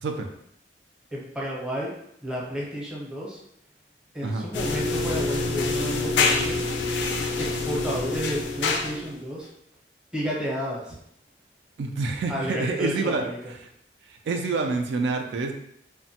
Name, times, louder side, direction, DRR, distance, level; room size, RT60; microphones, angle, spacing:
voice 1, 1.1-1.9 2.2-3.4 4.1-6.7 7.4-9.5 10.1-11.0 12.3-13.4, equal, 5° right, -5 dB, 0.6 m, -31 dB
sound 1, 4.5-9.2, left 3 dB, 85° left, 0.4 m, -26 dB
voice 2, 11.8-13.2 13.6-13.7 14.1-15.5, right 3 dB, 75° right, 4 dB, 0.3 m, -27 dB
3.2 x 2.1 x 2.8 m, 0.73 s
head